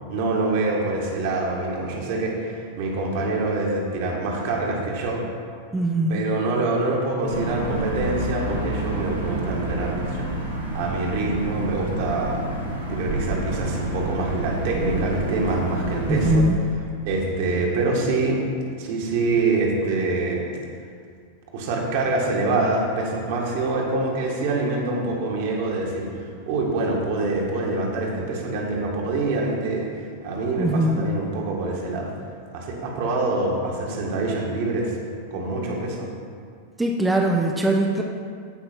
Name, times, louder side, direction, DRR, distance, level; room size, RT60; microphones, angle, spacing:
voice 1, 0.1-5.2 6.1-12.4 12.9-16.5 17.1-18.4 18.8-20.5 21.5-29.9 30.2-32.1 32.5-35.0 35.3-36.1, right 2 dB, 50° right, -1 dB, 1.9 m, -25 dB
voice 2, 5.7-6.3 16.1-16.6 30.6-31.1 36.8-38.0, right 1 dB, 10° right, 0 dB, 0.8 m, -21 dB
sound 1, 7.3-16.4, right 1 dB, 85° right, 2.0 m, -28 dB
15.0 x 5.4 x 4.5 m, 2.2 s
figure-of-eight pair, 90°, 0 cm